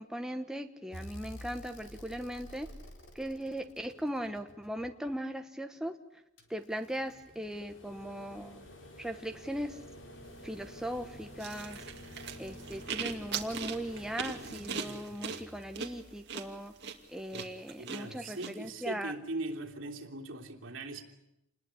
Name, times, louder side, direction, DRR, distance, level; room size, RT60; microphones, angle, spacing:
voice 1, 0.0-2.7 3.1-6.0 6.5-8.6 9.0-9.8 10.4-11.8 12.4-16.7 17.1-19.1, equal, 5° right, 5 dB, 1.1 m, -38 dB
sound 1, 0.9-5.1 6.4-17.6 19.1-19.2, equal, 65° left, 4.3 m, -50 dB
sound 2, 11.4-18.5, right 6 dB, 55° right, 2.5 m, -40 dB
voice 2, 17.8-21.0, right 2 dB, 75° right, 1 dB, 3.3 m, -40 dB
28.0 x 20.5 x 8.5 m, 0.87 s
head